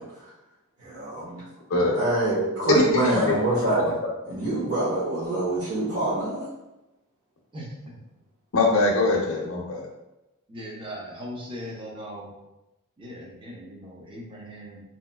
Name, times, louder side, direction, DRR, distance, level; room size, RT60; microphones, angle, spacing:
voice 1, 0.8-1.4 2.0-3.9 4.3-6.4, right 2 dB, 80° right, -11 dB, 1.2 m, -25 dB
voice 2, 1.7-2.0 2.7-3.7 8.5-9.8, left 3 dB, 65° left, -2 dB, 0.6 m, -23 dB
voice 3, 10.5-12.3 13.0-14.8, equal, 25° right, -3 dB, 0.6 m, -39 dB
3.0 x 2.8 x 2.2 m, 0.99 s
head